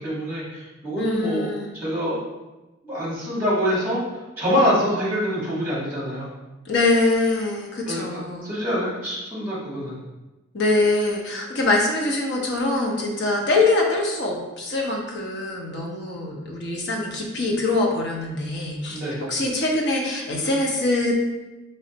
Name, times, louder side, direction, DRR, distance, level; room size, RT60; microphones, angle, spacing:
voice 1, 0.0-1.5 1.7-2.2 2.8-4.0 4.4-6.3 7.9-9.9 18.9-19.2, equal, 10° right, -7 dB, 1.4 m, -25 dB
voice 2, 1.0-1.7 6.7-8.5 10.5-21.1, left 2 dB, 55° left, -1 dB, 0.7 m, -23 dB
4.3 x 3.1 x 2.8 m, 1.1 s
head